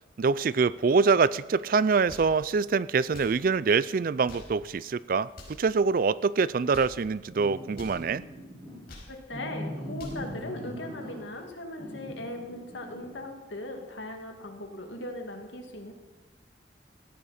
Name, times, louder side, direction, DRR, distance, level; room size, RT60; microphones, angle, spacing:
voice 1, 0.2-8.2, right 5 dB, 50° right, 19 dB, 0.4 m, -25 dB
sound 1, 2.0-2.4 3.0-3.4 4.1-4.6 5.3-5.7 6.5-7.0 7.7-8.0 8.7-9.2 9.7-10.3, left 1 dB, 55° left, 5.1 m, -47 dB
sound 2, 7.3-8.8 9.3-11.4 11.8-13.2, equal, 30° right, 5.7 m, -41 dB
voice 2, 9.1-15.9, left 1 dB, 85° left, 3 dB, 2.3 m, -39 dB
17.0 x 14.5 x 4.3 m, 1.1 s
head